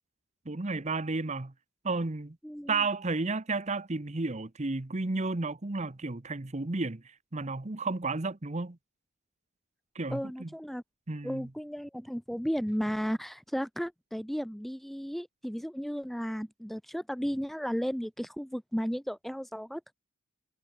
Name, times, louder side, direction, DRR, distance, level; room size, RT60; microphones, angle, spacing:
voice 1, 0.5-1.5 1.8-2.4 2.7-7.0 7.3-8.8 9.9-10.5 11.1-11.5, right 3 dB, 30° right, 0.9 m, -32 dB
voice 2, 2.4-2.8 10.1-10.8 11.2-19.9, equal, ahead, 0.5 m, -34 dB
head